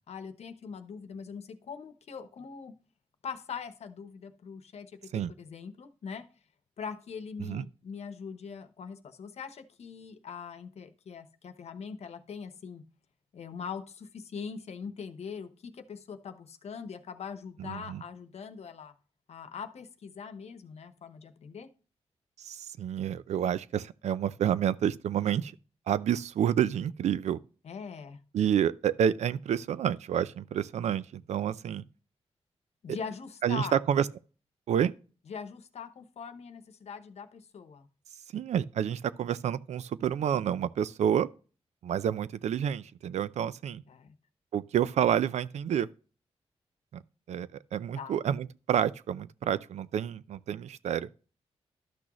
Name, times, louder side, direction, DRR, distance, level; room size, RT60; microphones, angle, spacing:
voice 1, 0.1-2.7 3.2-5.1 5.4-6.2 6.8-12.8 13.3-18.9 19.3-21.7 27.6-28.2 32.8-33.8 35.3-37.9 43.9-44.1 47.9-48.2, left 6 dB, 70° left, 0.9 m, -42 dB
voice 2, 17.6-18.0 22.4-25.5 25.9-27.4 28.3-31.8 33.4-34.1 34.7-34.9 38.3-41.3 41.8-43.8 44.5-45.9 47.3-51.1, right 9 dB, 85° right, 0.4 m, -29 dB
12.0 x 6.1 x 3.0 m
cardioid pair, 90°, 11 cm